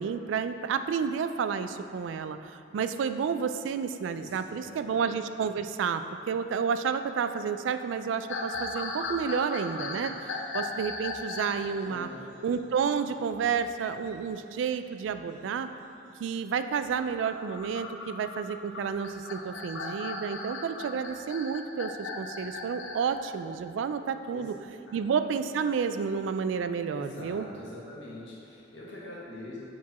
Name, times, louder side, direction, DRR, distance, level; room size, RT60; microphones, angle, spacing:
voice 1, 0.0-10.1 10.5-12.1 12.4-15.7 16.2-24.5 24.9-27.5, right 6 dB, 85° right, 10 dB, 0.3 m, -30 dB
voice 2, 4.1-5.0 11.6-12.2 24.3-24.5 24.9-25.0 26.9-29.6, left 1 dB, 70° left, -6 dB, 1.5 m, -44 dB
sound 1, 8.3-11.6 13.1-13.7 14.0-14.1 14.8-15.2 16.9-23.0, left 3 dB, 85° left, 0.7 m, -37 dB
5.9 x 4.7 x 4.1 m, 2.7 s
head